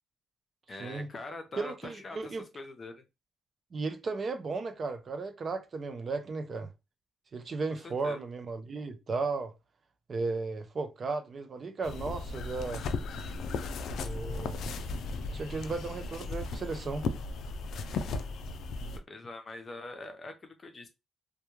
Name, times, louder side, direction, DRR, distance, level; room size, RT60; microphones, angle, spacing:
voice 1, 0.7-2.2 2.5-3.0 7.8-8.2 19.1-20.9, left 2 dB, 35° left, 0.6 m, -43 dB
voice 2, 1.6-2.4 3.7-6.7 7.3-9.5 10.1-12.9 14.0-14.7 15.3-17.0, right 3 dB, 45° right, 0.5 m, -35 dB
sound 1, 11.8-19.0, left 4 dB, 70° left, 0.3 m, -36 dB
2.2 x 2.2 x 3.0 m
cardioid pair, 90°, 0 cm